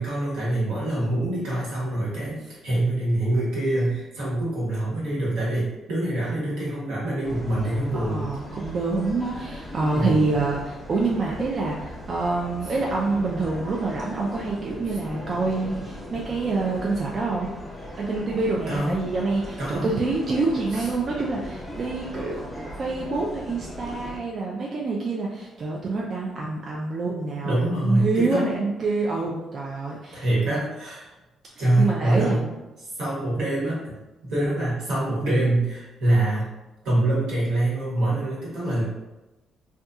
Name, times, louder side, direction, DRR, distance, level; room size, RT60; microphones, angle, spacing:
voice 1, 0.0-8.3 9.9-10.2 12.6-12.7 18.7-19.0 19.6-19.9 20.7-20.9 27.4-28.5 30.1-31.1 31.6-32.4 33.0-34.0 34.2-36.5 36.8-38.8, right 1 dB, 85° right, -7 dB, 1.2 m, -25 dB
sound 1, 7.2-24.2, equal, 5° left, 0.7 m, -38 dB
voice 2, 7.9-17.5 18.0-30.3 31.6-32.5, right 3 dB, 50° right, -3 dB, 0.4 m, -27 dB
2.7 x 2.2 x 2.3 m, 1.1 s
cardioid pair, 90°, 0 cm